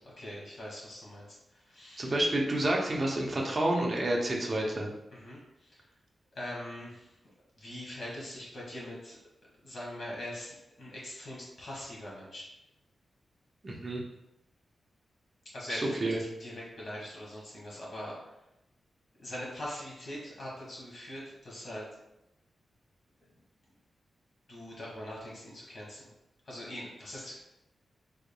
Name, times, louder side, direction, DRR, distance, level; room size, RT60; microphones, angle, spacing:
voice 1, 0.2-1.3 1.5-2.1 5.1-5.9 6.3-7.1 7.6-9.2 9.6-12.5 15.5-16.1 16.4-18.2 19.2-21.9 24.5-26.0 26.5-27.4, left 1 dB, 50° left, -5 dB, 1.4 m, -42 dB
voice 2, 2.0-4.9 13.6-14.0 15.7-16.2, right 1 dB, 30° right, -1 dB, 0.6 m, -29 dB
3.7 x 3.4 x 2.2 m, 0.89 s
wide cardioid pair, 155°, 0 cm